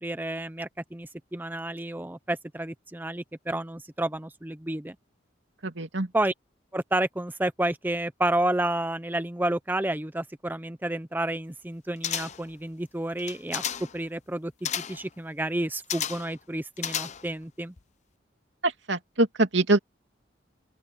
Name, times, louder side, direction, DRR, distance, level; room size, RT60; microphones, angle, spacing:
voice 1, 0.0-5.0 6.1-6.3 6.7-13.6 13.9-17.7, right 1 dB, 10° right, 0.6 m, -30 dB
voice 2, 5.6-6.1 18.6-19.8, right 2 dB, 80° right, 2.6 m, -24 dB
sound 1, 12.0-12.5 13.2-14.0 14.6-15.1 15.9-16.4 16.8-17.4 17.8-17.9, left 9 dB, 40° left, 0.7 m, -32 dB
open air
head